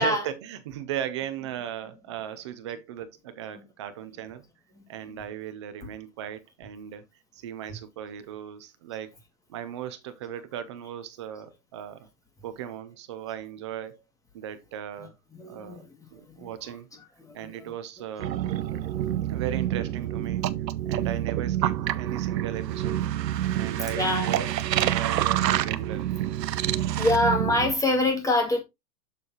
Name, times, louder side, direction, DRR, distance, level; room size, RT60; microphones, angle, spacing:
voice 1, 0.0-4.4 4.9-7.0 7.3-9.1 9.5-12.1 12.4-14.0 14.3-15.1 15.5-15.8 16.1-16.9 17.3-18.4 19.2-20.5 20.8-23.0 23.5-26.1, right 10 dB, 20° right, 0.3 m, -37 dB
voice 2, 4.7-5.2 5.8-5.9 15.0-16.1 16.4-16.8 17.2-17.7 18.3-18.4 18.7-19.2 23.4-24.3 25.1-25.9 27.0-28.6, left 2 dB, 5° left, 2.1 m, -28 dB
sound 1, 18.2-27.7, right 12 dB, 90° right, 0.8 m, -27 dB
6.9 x 6.5 x 2.9 m
hypercardioid pair, 135°, 48 cm